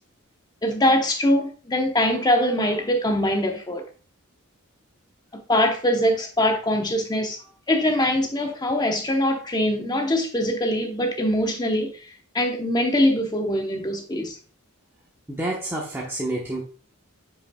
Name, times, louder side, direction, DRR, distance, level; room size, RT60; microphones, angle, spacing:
voice 1, 0.6-3.8 5.5-7.4 7.7-11.9 12.3-14.4, left 1 dB, 20° left, 0.9 m, -22 dB
voice 2, 15.3-16.6, right 1 dB, 10° right, 1.0 m, -28 dB
8.4 x 5.3 x 2.3 m
head